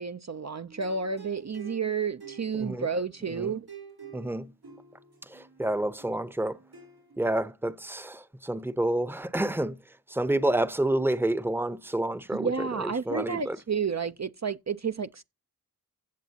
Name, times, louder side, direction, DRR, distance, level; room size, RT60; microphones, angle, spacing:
voice 1, 0.0-3.7 12.3-15.2, right 5 dB, 50° right, 0.6 m, -31 dB
sound 1, 0.7-7.3, right 6 dB, 90° right, 3.5 m, -49 dB
voice 2, 4.1-4.5 5.2-6.6 7.2-9.8 10.1-13.6, right 1 dB, 5° right, 0.7 m, -29 dB
16.0 x 7.2 x 2.8 m
wide cardioid pair, 45°, 37 cm